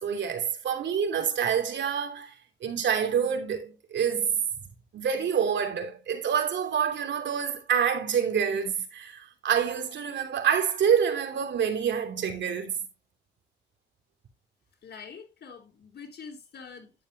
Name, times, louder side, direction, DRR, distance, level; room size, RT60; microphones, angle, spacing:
voice 1, 0.0-4.4 4.9-12.9, right 7 dB, 65° right, 3.0 m, -27 dB
voice 2, 14.8-16.9, left 5 dB, 55° left, 3.6 m, -45 dB
11.5 x 8.9 x 2.7 m
cardioid pair, 90°, 20 cm